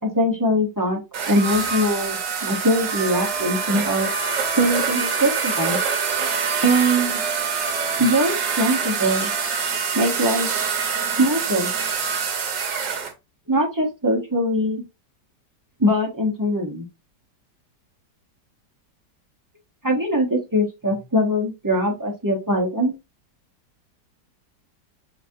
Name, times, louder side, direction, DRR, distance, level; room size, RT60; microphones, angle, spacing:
voice 1, 0.1-1.0 1.3-4.1 4.6-5.8 6.6-7.2 8.0-9.3 9.9-10.5 11.2-11.7 13.5-14.8 15.8-16.8 19.8-22.9, equal, 20° right, 0 dB, 0.5 m, -22 dB
sound 1, 1.1-13.1, right 6 dB, 85° right, 1.6 m, -25 dB
5.8 x 2.5 x 2.6 m, 0.24 s
omnidirectional pair, 1.8 m